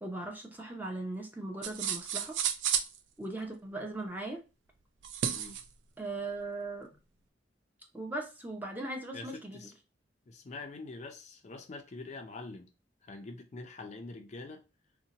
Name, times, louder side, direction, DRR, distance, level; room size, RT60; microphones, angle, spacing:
voice 1, 0.0-2.4 3.2-4.4 6.0-6.9 7.9-9.7, right 2 dB, 10° right, 0.6 m, -39 dB
sound 1, 1.6-3.0 5.0-5.6, right 8 dB, 85° right, 0.4 m, -32 dB
voice 2, 9.1-9.7 10.3-12.7 13.1-14.6, left 3 dB, 40° left, 0.4 m, -45 dB
2.7 x 2.1 x 3.8 m
head